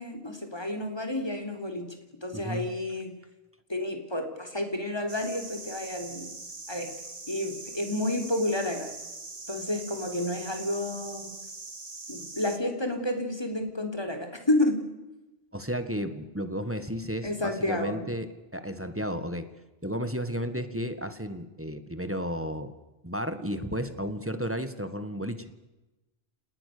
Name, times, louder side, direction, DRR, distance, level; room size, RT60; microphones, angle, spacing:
voice 1, 0.0-3.1 3.7-6.3 6.7-6.9 7.3-8.9 9.5-11.3 12.1-14.8 17.2-18.0, left 1 dB, 25° left, 5 dB, 3.9 m, -30 dB
voice 2, 2.3-2.7 15.5-19.5 19.8-22.7 23.0-25.6, equal, 15° right, 10 dB, 1.8 m, -33 dB
sound 1, 5.1-12.6, right 3 dB, 30° right, 1.4 m, -42 dB
29.5 x 19.5 x 6.9 m, 1.1 s
omnidirectional pair, 1.0 m